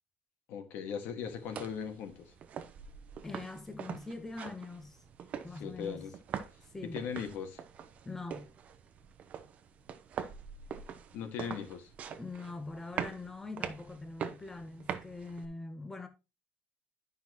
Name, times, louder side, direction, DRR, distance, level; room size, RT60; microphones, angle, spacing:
voice 1, 0.5-2.3 5.5-6.1 6.8-7.6 11.1-11.9, left 7 dB, 60° left, 1.8 m, -39 dB
sound 1, 1.2-15.4, right 7 dB, 35° right, 0.8 m, -44 dB
voice 2, 3.2-5.0 5.4-6.1 6.7-7.0 8.0-8.5 12.1-16.1, left 3 dB, 10° left, 0.9 m, -43 dB
11.5 x 5.8 x 3.0 m
cardioid pair, 175°, 4 cm